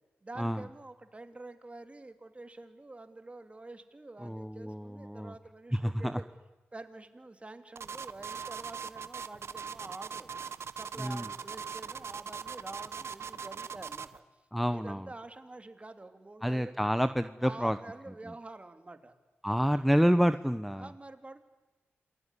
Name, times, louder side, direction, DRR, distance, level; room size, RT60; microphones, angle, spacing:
voice 1, 0.2-6.2 6.7-10.3 10.7-14.2 14.7-16.8 17.4-19.2 19.7-19.8 20.8-21.4, right 2 dB, 25° right, 7 dB, 2.9 m, -47 dB
voice 2, 4.2-5.3 5.7-6.2 11.0-11.3 14.5-15.1 16.4-17.8 19.4-20.9, equal, ahead, 10 dB, 0.9 m, -28 dB
sound 1, 7.8-14.2, right 6 dB, 70° right, 1.2 m, -40 dB
28.0 x 20.0 x 9.9 m, 1.2 s
cardioid pair, 70°, 5 cm